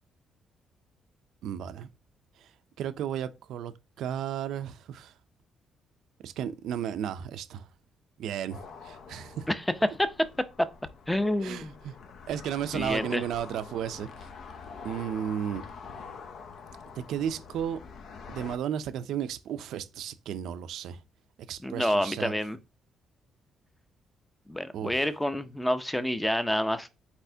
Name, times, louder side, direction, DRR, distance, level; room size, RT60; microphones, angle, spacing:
voice 1, 1.4-1.9 2.4-2.5 2.8-5.1 6.2-7.7 8.2-9.5 11.4-11.9 12.3-14.3 14.8-15.6 16.9-17.8 18.3-21.0 21.5-22.3 24.7-24.9, right 9 dB, 80° right, 0.4 m, -34 dB
sound 1, 8.5-18.6, left 5 dB, 65° left, 0.6 m, -45 dB
voice 2, 9.5-10.1 11.1-11.7 12.7-13.2 21.6-22.6 24.5-26.9, left 1 dB, 5° left, 0.5 m, -28 dB
4.2 x 4.2 x 2.7 m
cardioid pair, 90°, 0 cm